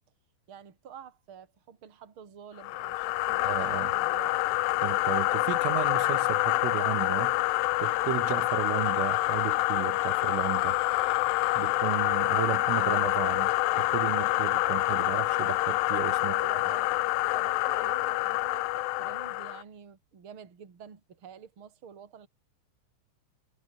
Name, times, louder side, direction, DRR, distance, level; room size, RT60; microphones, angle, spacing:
voice 1, 0.5-4.4 16.2-22.3, right 7 dB, 30° right, 3.4 m, -48 dB
sound 1, 2.6-19.6, left 20 dB, 90° left, 3.2 m, -27 dB
voice 2, 3.5-3.9 4.8-7.4 7.8-10.8 11.6-13.5 13.8-16.4, right 15 dB, 90° right, 4.1 m, -34 dB
omnidirectional pair, 5.6 m